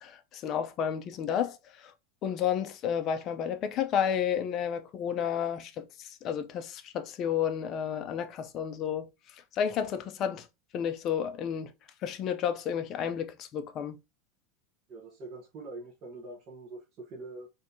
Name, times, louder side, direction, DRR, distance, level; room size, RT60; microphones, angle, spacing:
voice 1, 0.0-1.9 2.2-9.1 9.5-10.5 10.7-11.7 12.0-14.0, left 8 dB, 35° left, 0.4 m, -31 dB
voice 2, 14.9-17.5, right 2 dB, 35° right, 0.8 m, -44 dB
3.6 x 2.6 x 2.7 m
supercardioid pair, 165°, 0 cm